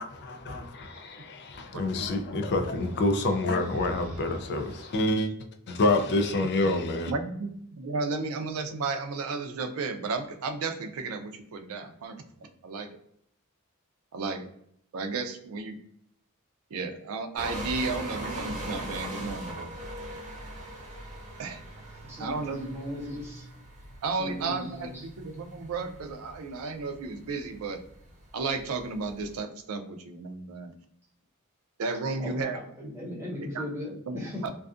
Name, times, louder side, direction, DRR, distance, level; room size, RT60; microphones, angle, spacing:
voice 1, 0.3-5.3 5.7-7.1, left 2 dB, 55° left, 6 dB, 0.4 m, -27 dB
voice 2, 7.1-12.9 14.1-14.5 14.9-15.8 16.7-19.7 21.4-21.6 22.2-22.6 24.0-27.8 28.3-30.7 31.8-32.6 33.5-33.6 34.1-34.2 34.4-34.5, right 4 dB, 85° right, 7 dB, 0.4 m, -33 dB
sound 1, 17.4-29.4, right 1 dB, 35° right, 0.9 m, -41 dB
voice 3, 22.0-23.5 24.2-25.0 32.1-32.5 32.8-34.5, left 1 dB, 15° right, -4 dB, 0.8 m, -37 dB
2.5 x 2.4 x 2.4 m, 0.69 s
head